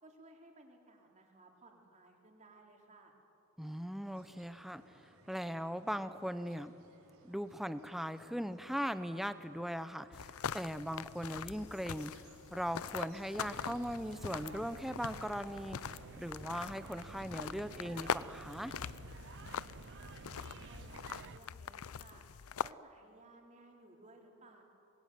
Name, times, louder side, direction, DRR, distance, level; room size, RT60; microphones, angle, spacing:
voice 1, 0.0-3.1 20.4-22.3 22.6-24.6, right 2 dB, 35° right, 1 dB, 3.9 m, -59 dB
voice 2, 3.6-6.7 7.2-12.1 12.5-18.7, equal, ahead, 11 dB, 0.9 m, -39 dB
sound 1, 4.0-15.8, right 2 dB, 80° right, 3.8 m, -64 dB
sound 2, 10.1-22.7, left 7 dB, 75° left, 0.5 m, -43 dB
sound 3, 13.4-21.4, right 4 dB, 55° right, 0.6 m, -51 dB
25.0 x 21.0 x 9.4 m, 2.8 s
head